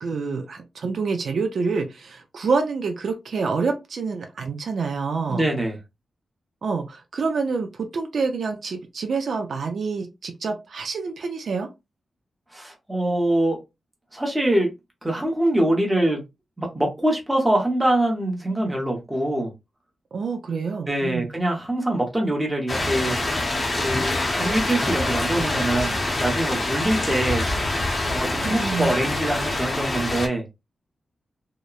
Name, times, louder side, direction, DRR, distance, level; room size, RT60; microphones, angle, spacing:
voice 1, 0.0-5.5 6.6-11.7 20.1-21.3 28.4-28.9, right 4 dB, 65° right, 0.4 m, -27 dB
voice 2, 5.3-5.8 12.5-13.6 14.1-14.7 15.0-16.2 16.6-19.5 20.9-23.2 23.8-27.5 28.1-30.4, right 1 dB, 10° right, 0.8 m, -24 dB
sound 1, 22.7-30.3, left 2 dB, 25° left, 0.7 m, -25 dB
2.8 x 2.0 x 2.3 m
wide cardioid pair, 135°, 0 cm